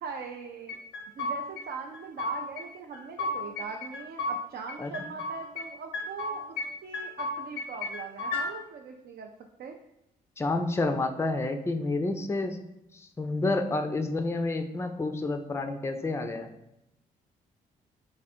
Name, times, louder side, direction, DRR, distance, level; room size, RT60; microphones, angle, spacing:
voice 1, 0.0-0.8 1.2-6.4 6.8-9.3 9.6-9.7, right 5 dB, 50° right, 3 dB, 0.4 m, -40 dB
sound 1, 0.7-1.7 1.9-2.7 2.9-4.4 4.7-5.7 5.9-6.7 6.9-8.5, left 2 dB, 80° left, 0.6 m, -34 dB
voice 2, 10.4-12.6 12.9-16.5, left 2 dB, 10° left, 7 dB, 0.4 m, -29 dB
3.4 x 2.5 x 4.2 m, 0.84 s
hypercardioid pair, 40°, 21 cm